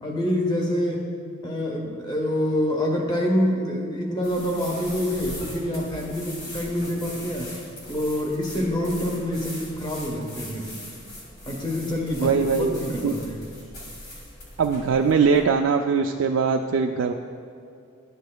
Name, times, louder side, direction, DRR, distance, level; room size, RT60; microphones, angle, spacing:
voice 1, 0.0-1.1 1.4-7.6 7.9-10.7 11.5-13.4, equal, 20° left, 0 dB, 1.0 m, -26 dB
sound 1, 4.2-15.4, left 1 dB, 50° left, 2.1 m, -40 dB
voice 2, 12.2-12.8 13.0-13.2 14.6-17.1, right 5 dB, 65° right, 3 dB, 0.3 m, -21 dB
12.0 x 8.1 x 2.2 m, 2.6 s
head